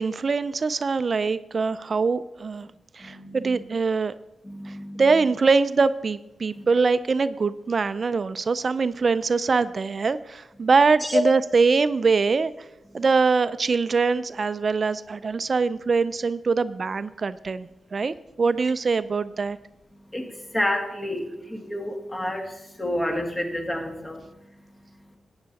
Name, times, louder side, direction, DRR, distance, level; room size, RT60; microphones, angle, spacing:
voice 1, 0.0-2.7 2.9-4.2 4.7-12.5 12.9-19.6, right 4 dB, 55° right, 14 dB, 0.4 m, -23 dB
voice 2, 3.0-3.6 4.4-5.2 6.5-6.7 11.0-11.2 12.9-13.0 19.9-25.2, left 1 dB, 25° left, 4 dB, 1.9 m, -30 dB
12.0 x 8.8 x 4.1 m, 0.95 s
cardioid pair, 55°, 0 cm